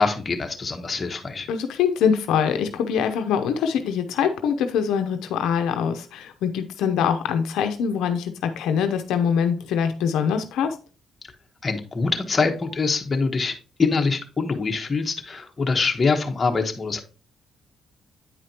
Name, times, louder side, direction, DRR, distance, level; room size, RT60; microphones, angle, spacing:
voice 1, 0.0-1.5 11.6-13.5 13.8-17.0, left 4 dB, 30° left, 3 dB, 1.2 m, -24 dB
voice 2, 1.5-10.7, left 7 dB, 85° left, 7 dB, 0.6 m, -23 dB
9.1 x 5.0 x 2.9 m, 0.36 s
cardioid pair, 90°, 0 cm